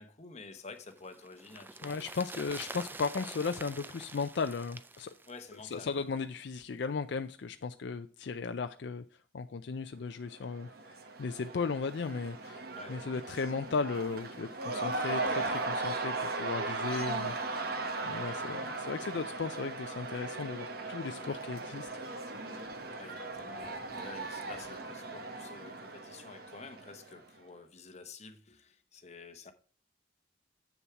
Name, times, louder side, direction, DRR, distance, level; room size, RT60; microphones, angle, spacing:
voice 1, 0.0-2.1 2.7-2.8 5.3-6.2 12.7-13.0 23.0-29.5, left 4 dB, 35° left, 0.9 m, -50 dB
sound 1, 0.7-6.1 6.4-6.5, right 3 dB, 10° right, 0.3 m, -46 dB
voice 2, 1.8-5.1 5.7-9.0 9.3-10.7 11.2-12.6 12.9-17.6 18.0-21.9, left 4 dB, 60° left, 0.4 m, -36 dB
Cheering / Crowd, 10.4-27.2, right 3 dB, 50° right, 1.1 m, -38 dB
7.2 x 7.0 x 4.6 m
head